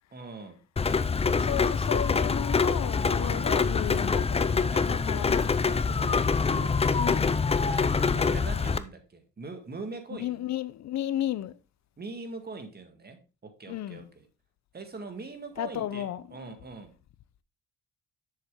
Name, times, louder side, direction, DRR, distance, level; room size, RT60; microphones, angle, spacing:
voice 1, 0.1-0.6 1.4-1.6 3.1-3.6 4.7-5.3 5.6-6.9 7.7-10.4 12.0-14.3 14.7-16.9, right 3 dB, 30° right, 1.9 m, -42 dB
Rain, 0.8-8.8, left 5 dB, 20° left, 0.5 m, -25 dB
voice 2, 1.3-5.5 7.0-7.4 10.1-11.6 13.7-14.1 15.6-16.5, left 12 dB, 65° left, 0.7 m, -34 dB
7.5 x 6.7 x 3.7 m
cardioid pair, 90°, 30 cm